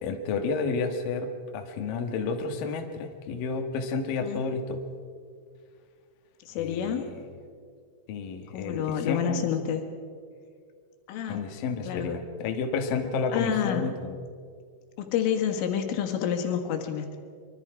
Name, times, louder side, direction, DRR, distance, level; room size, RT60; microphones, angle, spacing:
voice 1, 0.0-4.8 6.6-7.3 8.1-9.4 11.3-14.1, left 4 dB, 60° left, 4 dB, 2.5 m, -31 dB
voice 2, 6.5-7.1 8.5-9.9 11.1-11.4 11.8-12.2 13.3-13.9 15.0-17.1, left 8 dB, 80° left, 5 dB, 4.2 m, -28 dB
24.5 x 24.5 x 4.8 m, 2.1 s
omnidirectional pair, 5.7 m